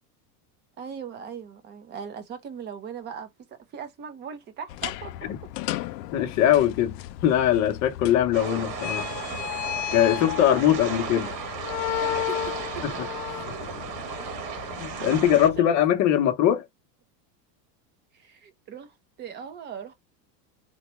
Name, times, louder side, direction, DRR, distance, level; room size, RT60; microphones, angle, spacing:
voice 1, 0.8-5.3 10.7-11.3 11.8-12.8 13.3-13.5 15.1-15.2 15.6-15.7 18.1-19.9, right 7 dB, 20° right, 0.5 m, -39 dB
sound 1, 4.7-15.6, left 14 dB, 75° left, 0.5 m, -34 dB
voice 2, 6.1-7.0 7.2-9.2 9.9-11.3 12.8-13.1 14.8-16.6, left 11 dB, 35° left, 0.7 m, -21 dB
sound 2, 8.3-15.5, right 6 dB, 75° right, 1.4 m, -35 dB
3.9 x 2.2 x 3.0 m
supercardioid pair, 150°, 50 cm